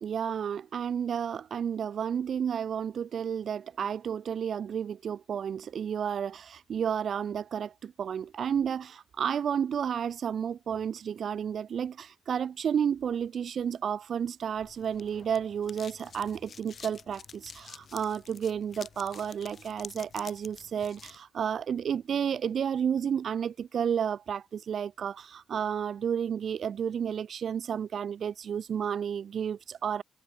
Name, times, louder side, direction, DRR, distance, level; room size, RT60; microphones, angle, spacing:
voice 1, 0.0-30.0, right 8 dB, 55° right, 1.1 m, -31 dB
sound 1, 14.6-21.2, left 6 dB, 45° left, 4.0 m, -49 dB
cardioid pair, 90°, 0 cm